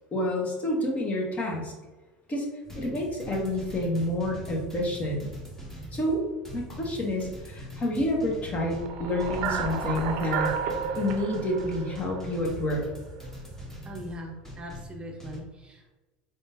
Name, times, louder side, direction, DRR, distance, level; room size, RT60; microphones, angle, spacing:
voice 1, 0.1-1.7 2.3-2.5 2.7-5.3 5.9-6.2 6.5-10.5 11.0-12.8, left 1 dB, 30° left, 0 dB, 1.2 m, -28 dB
sound 1, 2.6-15.4, right 1 dB, 10° left, 1.2 m, -42 dB
sound 2, 8.7-13.0, right 6 dB, 60° right, 0.5 m, -32 dB
voice 2, 13.8-15.9, equal, 20° right, 0 dB, 0.7 m, -41 dB
3.9 x 3.6 x 2.6 m, 1.2 s
hypercardioid pair, 90°, 5 cm